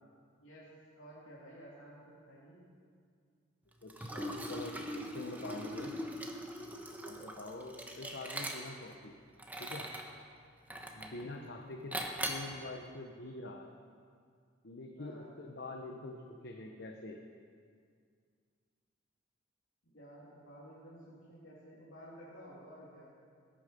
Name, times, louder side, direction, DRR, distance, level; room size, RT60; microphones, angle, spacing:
voice 1, 1.0-2.6 11.2-11.5 15.0-15.3 19.8-23.1, equal, 85° left, -7 dB, 3.1 m, -53 dB
voice 2, 3.8-5.9 7.0-9.2 9.6-9.9 10.9-12.0 12.3-13.7 14.6-17.2, left 2 dB, 60° left, 2 dB, 1.0 m, -45 dB
Liquid, 3.9-8.9 9.4-10.1 10.7-11.2 11.9-12.5, right 1 dB, 10° right, 1.2 m, -41 dB
20.0 x 8.9 x 5.3 m, 2.1 s
head